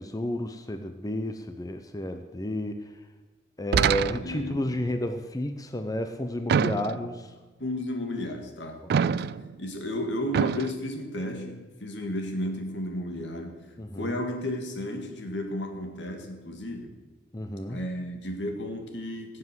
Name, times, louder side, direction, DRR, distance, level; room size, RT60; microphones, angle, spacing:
voice 1, 0.0-2.9 3.6-7.3 8.8-8.9 13.8-14.1 17.3-17.9, left 1 dB, 20° left, 7 dB, 0.7 m, -31 dB
sound 1, 3.7-4.5 6.5-7.2 8.9-9.5 10.3-10.7, right 7 dB, 60° right, 0.3 m, -25 dB
voice 2, 4.2-4.8 7.6-13.6 14.0-17.0 17.7-19.4, left 1 dB, 80° left, 4 dB, 2.1 m, -33 dB
16.5 x 7.5 x 6.2 m, 1.3 s
head